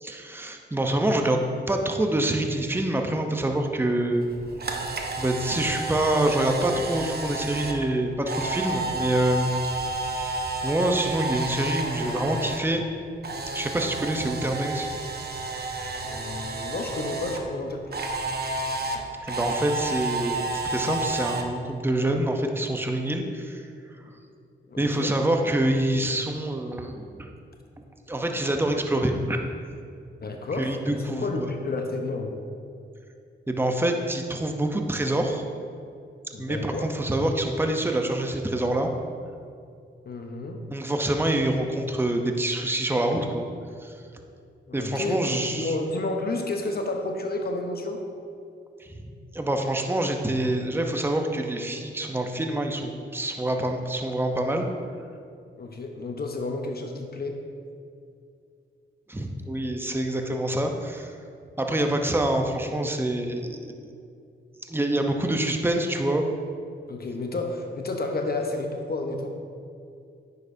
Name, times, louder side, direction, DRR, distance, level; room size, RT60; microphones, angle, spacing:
voice 1, 0.0-4.2 5.2-12.8 13.5-14.9 19.2-23.6 24.8-27.3 28.1-29.4 30.6-31.5 33.5-35.4 36.4-38.9 40.7-43.5 43.8-43.9 44.7-45.7 48.8-54.7 59.1-61.2 61.6-63.9 64.6-66.2, right 1 dB, 10° right, 4 dB, 0.8 m, -26 dB
Camera, 4.3-12.6 12.9-17.4 17.9-21.4, right 2 dB, 50° right, 0.9 m, -31 dB
voice 2, 16.0-18.1 24.7-25.1 30.2-32.5 36.3-36.8 40.0-40.6 44.7-48.0 55.6-57.4 66.9-69.3, left 2 dB, 50° left, 3 dB, 0.9 m, -31 dB
9.6 x 6.6 x 2.7 m, 2.4 s
cardioid pair, 55°, 20 cm